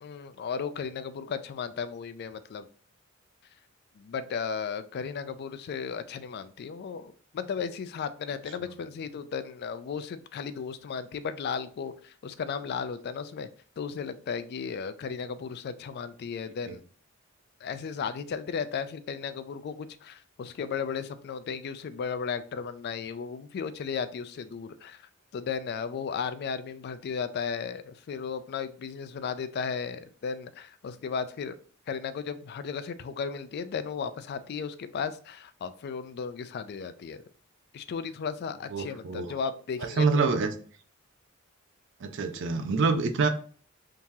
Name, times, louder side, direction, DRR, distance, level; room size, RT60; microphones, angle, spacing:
voice 1, 0.0-2.7 4.0-13.5 13.8-16.8 17.6-31.6 31.9-37.2 37.7-40.3, left 6 dB, 50° left, 12 dB, 0.3 m, -35 dB
voice 2, 38.7-39.3 40.0-40.5 42.0-43.3, right 4 dB, 60° right, 7 dB, 0.5 m, -26 dB
3.7 x 2.9 x 2.7 m, 0.44 s
head